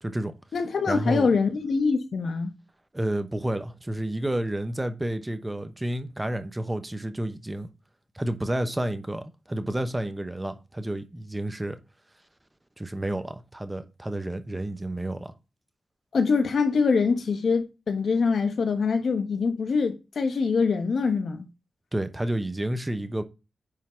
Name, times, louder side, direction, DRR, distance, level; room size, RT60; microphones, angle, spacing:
voice 1, 0.0-0.3 0.9-1.3 2.9-7.7 8.1-11.8 12.8-15.3 21.9-23.2, right 1 dB, 15° right, 0.9 m, -30 dB
voice 2, 0.5-2.5 16.1-21.5, left 5 dB, 65° left, 1.2 m, -24 dB
9.6 x 3.8 x 4.4 m
wide cardioid pair, 120°, 0 cm